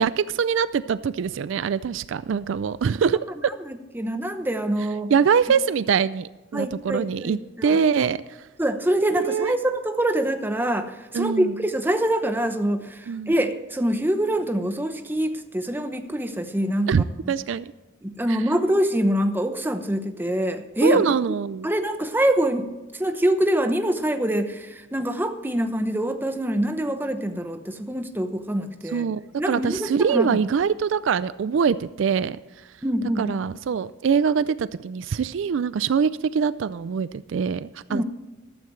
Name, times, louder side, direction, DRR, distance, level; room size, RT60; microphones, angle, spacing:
voice 1, 0.0-3.2 5.1-8.5 9.2-9.5 11.1-11.6 13.1-13.3 16.9-17.7 18.3-18.4 20.8-21.7 28.9-29.2 29.5-32.4 33.2-38.0, right 6 dB, 65° right, 16 dB, 0.4 m, -23 dB
voice 2, 3.6-5.1 6.5-7.8 8.6-17.3 18.0-21.2 21.6-29.1 29.4-30.4 32.8-33.4 37.9-38.0, right 1 dB, 10° right, 7 dB, 0.9 m, -25 dB
14.0 x 13.0 x 3.2 m, 1.2 s
head